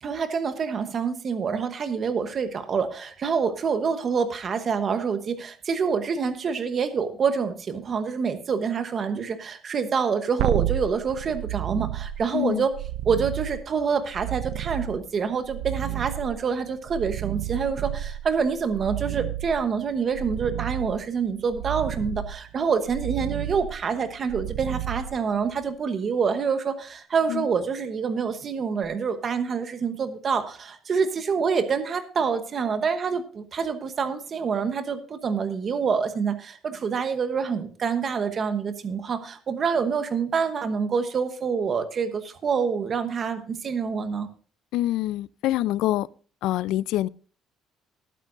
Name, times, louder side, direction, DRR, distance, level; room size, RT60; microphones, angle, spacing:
voice 1, 0.0-12.7 13.0-44.3, right 6 dB, 30° right, 1.1 m, -26 dB
sound 1, 10.4-25.7 28.8-28.9, right 13 dB, 80° right, 0.7 m, -32 dB
voice 2, 12.3-12.7 27.3-27.4 44.7-46.1 46.4-47.1, left 15 dB, 70° left, 0.4 m, -25 dB
18.5 x 9.2 x 2.6 m
cardioid pair, 180°, 0 cm